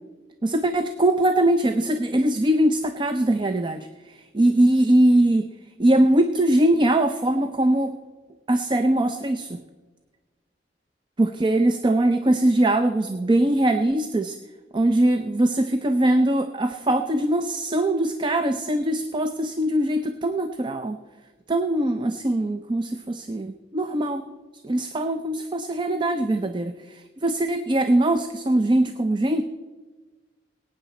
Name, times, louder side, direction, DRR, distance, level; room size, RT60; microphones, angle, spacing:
voice 1, 0.4-3.9 4.3-5.5 5.8-8.0 8.5-9.6 11.2-14.4 14.7-21.0 21.5-24.2 24.6-29.4, right 1 dB, 25° right, 9 dB, 0.5 m, -21 dB
18.5 x 9.0 x 4.2 m, 1.3 s
head